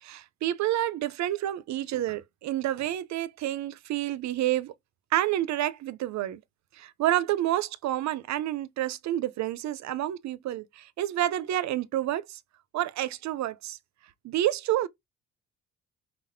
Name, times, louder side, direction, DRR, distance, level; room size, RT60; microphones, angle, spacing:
voice 1, 0.0-4.7 5.1-6.4 6.7-12.4 12.7-13.8 14.2-14.9, right 13 dB, 65° right, 0.5 m, -29 dB
4.1 x 4.0 x 2.5 m
cardioid pair, 90°, 30 cm